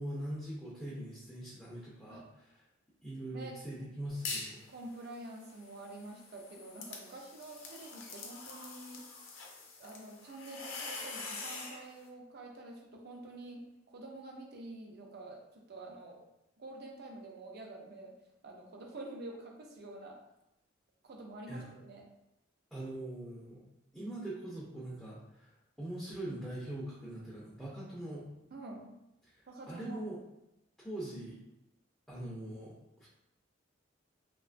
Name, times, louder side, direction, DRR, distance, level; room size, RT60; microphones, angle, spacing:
voice 1, 0.0-2.6 3.0-4.6 21.5-21.7 22.7-23.6 23.9-25.5 25.8-28.3 29.2-30.2 30.8-31.4 32.1-33.1, right 1 dB, 5° left, -8 dB, 0.5 m, -42 dB
sound 1, 4.1-4.6 5.0-11.8, left 4 dB, 85° left, 0.5 m, -44 dB
voice 2, 4.7-9.0 9.8-15.4 15.7-16.2 16.6-18.1 18.4-20.2 21.0-22.0 28.5-29.0 29.5-30.0, right 2 dB, 55° right, 1 dB, 0.5 m, -47 dB
2.8 x 2.2 x 2.4 m, 0.87 s
head